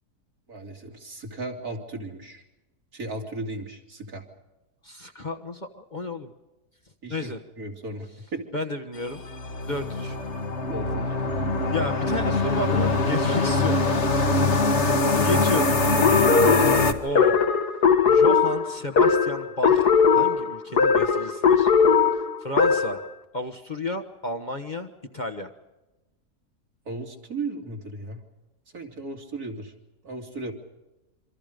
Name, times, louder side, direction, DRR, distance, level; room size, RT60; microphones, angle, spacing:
voice 1, 0.5-2.4 2.9-4.2 7.0-8.4 10.7-11.2 14.4-14.8 26.8-28.2 28.7-29.7 30.0-30.5, right 2 dB, 65° right, 2 dB, 3.4 m, -36 dB
voice 2, 4.8-6.3 7.1-7.4 8.5-9.2 9.6-10.2 11.7-14.1 15.1-15.7 17.0-17.4 18.1-21.7 22.4-23.0 23.3-25.5, left 2 dB, 30° left, 6 dB, 1.3 m, -32 dB
sound 1, 9.1-16.9, left 2 dB, 45° left, 1.8 m, -23 dB
sound 2, 16.0-23.1, left 6 dB, 80° left, 2.0 m, -19 dB
26.5 x 25.5 x 5.2 m, 1.0 s
omnidirectional pair, 1.7 m